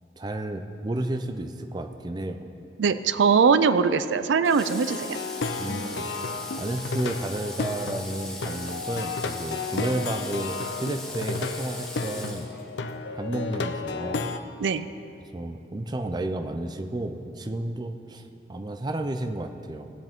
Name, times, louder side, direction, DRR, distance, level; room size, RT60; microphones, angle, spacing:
voice 1, 0.2-2.5 5.6-6.1 6.6-12.5 13.1-14.3 15.3-18.2 18.5-19.9, right 1 dB, 25° right, 7 dB, 0.5 m, -32 dB
voice 2, 2.8-5.2 14.6-14.9, right 5 dB, 85° right, 13 dB, 0.4 m, -21 dB
Water / Water tap faucet, 4.4-13.0, left 1 dB, 5° left, 1.0 m, -40 dB
Plucked string instrument, 4.6-14.4, left 4 dB, 75° left, 0.5 m, -33 dB
18.5 x 8.0 x 3.6 m, 2.8 s
head